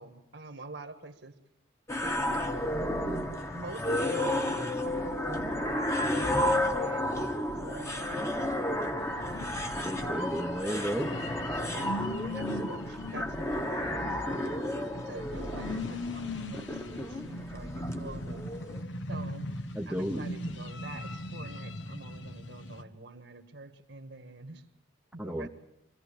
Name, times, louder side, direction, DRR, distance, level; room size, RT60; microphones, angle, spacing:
voice 1, 0.0-1.3 2.0-2.5 3.5-7.0 7.6-8.3 9.6-10.1 11.6-14.7 14.9-18.5 19.1-19.5 19.8-24.6 25.1-25.5, right 2 dB, 60° right, 8 dB, 1.7 m, -46 dB
sound 1, 1.9-18.8, left 1 dB, 15° left, 1.3 m, -32 dB
sound 2, 9.0-22.8, left 2 dB, 70° left, 1.2 m, -40 dB
voice 2, 9.8-11.1 19.7-20.2 25.2-25.5, equal, 5° right, 1 dB, 0.9 m, -33 dB
24.5 x 15.5 x 8.5 m, 0.85 s
head